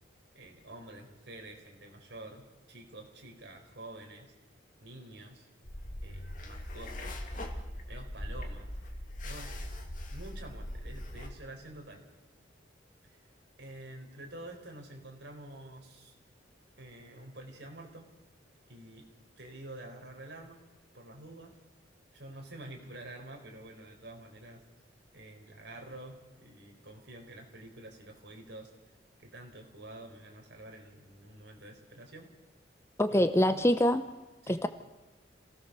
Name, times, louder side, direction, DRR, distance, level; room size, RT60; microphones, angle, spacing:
voice 1, 0.3-4.3 4.8-5.5 6.0-7.2 7.9-8.7 9.2-9.5 10.1-12.0 13.0-13.2 13.6-16.1 16.8-18.1 18.7-19.1 19.4-20.6 20.9-21.6 22.1-24.6 25.1-28.7 29.2-32.3 33.1-33.7 34.4-34.6, right 1 dB, 65° right, 2 dB, 4.5 m, -48 dB
sound 1, 5.6-11.3, left 1 dB, 45° left, 2.4 m, -40 dB
voice 2, 33.0-34.0 34.5-34.7, equal, 15° left, 9 dB, 0.6 m, -24 dB
27.0 x 17.5 x 6.8 m, 1.2 s
head